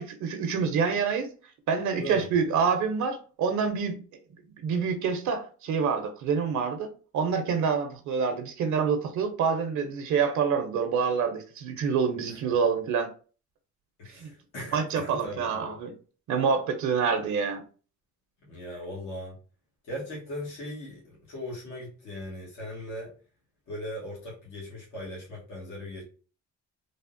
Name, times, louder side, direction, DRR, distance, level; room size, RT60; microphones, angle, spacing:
voice 1, 0.0-1.3 1.7-4.0 4.6-6.9 7.1-13.1 14.2-14.3 14.7-15.9 16.3-17.6, right 6 dB, 75° right, 0.6 m, -27 dB
voice 2, 1.9-2.4 12.4-12.5 14.0-15.8 18.5-19.3 19.9-23.1 23.7-26.0, left 1 dB, 90° left, 1.2 m, -38 dB
3.3 x 2.1 x 2.4 m
cardioid pair, 90°, 30 cm